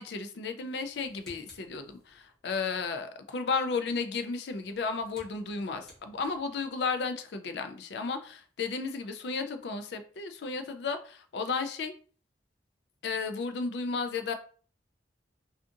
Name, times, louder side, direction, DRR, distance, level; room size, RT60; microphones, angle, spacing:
voice 1, 0.0-11.9 13.0-14.3, left 4 dB, 70° left, 8 dB, 0.4 m, -33 dB
sound 1, 0.8-2.4 4.4-6.7, equal, 5° left, 0.9 m, -58 dB
2.4 x 2.4 x 2.6 m, 0.42 s
head